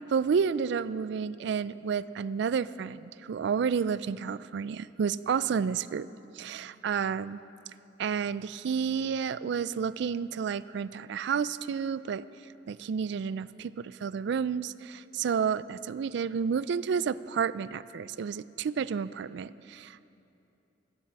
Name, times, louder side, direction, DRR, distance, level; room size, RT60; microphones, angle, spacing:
voice 1, 0.1-6.1 6.3-7.4 8.0-12.2 12.7-20.0, right 6 dB, 65° right, 17 dB, 0.3 m, -30 dB
15.5 x 8.0 x 7.6 m, 2.8 s
head